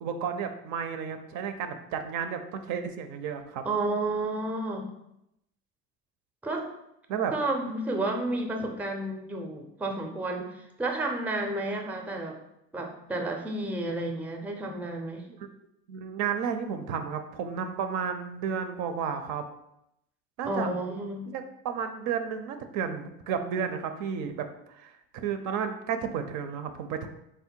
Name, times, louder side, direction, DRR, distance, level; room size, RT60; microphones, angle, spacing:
voice 1, 0.0-3.6 7.1-7.3 8.6-8.7 15.9-19.5 20.4-20.7 21.3-27.1, right 7 dB, 65° right, 8 dB, 0.5 m, -32 dB
voice 2, 3.6-4.9 6.4-6.7 7.3-12.4 12.7-15.3 20.4-21.3, right 2 dB, 5° right, 3 dB, 0.4 m, -31 dB
3.6 x 2.1 x 4.3 m, 0.82 s
cardioid pair, 110°, 32 cm